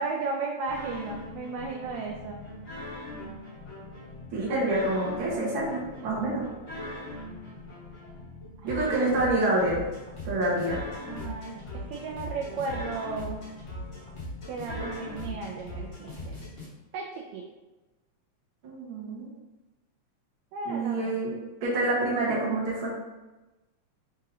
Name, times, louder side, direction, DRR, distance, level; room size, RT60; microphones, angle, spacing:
voice 1, 0.0-2.4 4.5-4.7 8.8-9.0 11.1-13.4 14.5-16.3 16.9-17.4 20.5-21.2, right 3 dB, 80° right, 1 dB, 1.7 m, -35 dB
sound 1, 0.7-16.7, left 1 dB, 50° left, 2.1 m, -40 dB
voice 2, 4.3-6.4 8.6-9.8 10.2-10.8 18.6-19.3 20.6-21.3 21.6-22.9, right 2 dB, 50° right, -6 dB, 1.8 m, -27 dB
5.3 x 3.7 x 2.7 m, 1.1 s
omnidirectional pair, 3.3 m